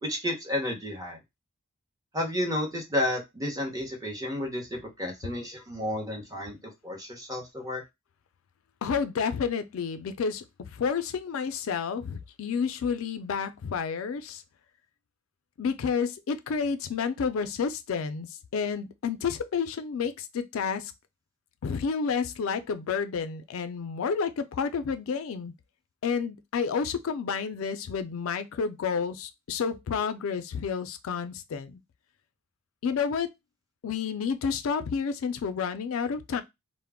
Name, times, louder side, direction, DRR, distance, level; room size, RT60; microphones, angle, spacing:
voice 1, 0.0-1.2 2.1-7.8, left 1 dB, 15° right, 0.8 m, -31 dB
voice 2, 8.8-14.4 15.6-20.9 21.6-25.5 26.0-31.8 32.8-33.3 33.8-36.4, left 6 dB, 70° left, 0.4 m, -30 dB
2.2 x 2.0 x 3.4 m
head